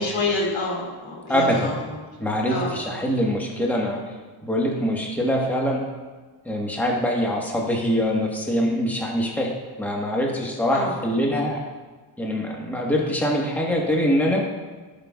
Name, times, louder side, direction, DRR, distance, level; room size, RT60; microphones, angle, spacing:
voice 1, 0.0-2.1 2.5-3.0 10.7-10.9, left 3 dB, 70° left, -2 dB, 2.3 m, -28 dB
voice 2, 1.3-1.7 2.2-4.0 4.4-5.8 6.4-9.5 9.8-11.6 12.2-14.4, equal, 5° left, -1 dB, 1.3 m, -23 dB
11.0 x 5.9 x 2.3 m, 1.3 s
cardioid pair, 80°, 48 cm